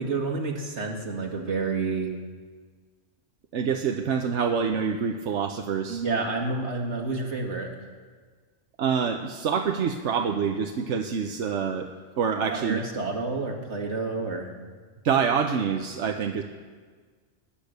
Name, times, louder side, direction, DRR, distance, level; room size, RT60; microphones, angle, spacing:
voice 1, 0.0-2.1 5.9-7.7 12.5-14.5, right 3 dB, 75° right, 1 dB, 2.3 m, -29 dB
voice 2, 3.5-6.0 8.8-11.9 12.2-12.8 15.0-16.4, right 6 dB, 90° right, 4 dB, 1.1 m, -26 dB
18.5 x 10.0 x 6.7 m, 1.5 s
omnidirectional pair, 1.2 m